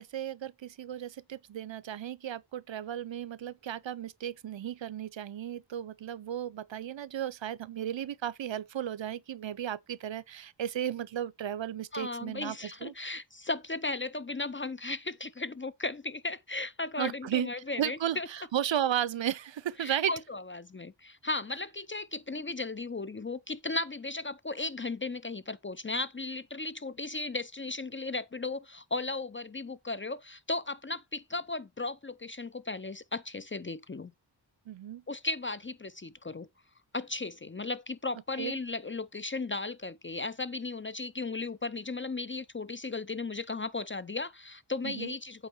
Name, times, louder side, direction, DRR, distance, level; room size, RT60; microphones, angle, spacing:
voice 1, 0.0-12.6 12.8-12.9 17.0-17.5 17.8-20.1 34.7-35.0 38.4-38.6 44.8-45.1, right 10 dB, 80° right, 0.6 m, -34 dB
voice 2, 11.9-18.3 19.8-34.1 35.1-36.5 36.9-45.5, left 3 dB, 25° left, 0.5 m, -36 dB
8.2 x 4.5 x 4.4 m
wide cardioid pair, 85°, 44 cm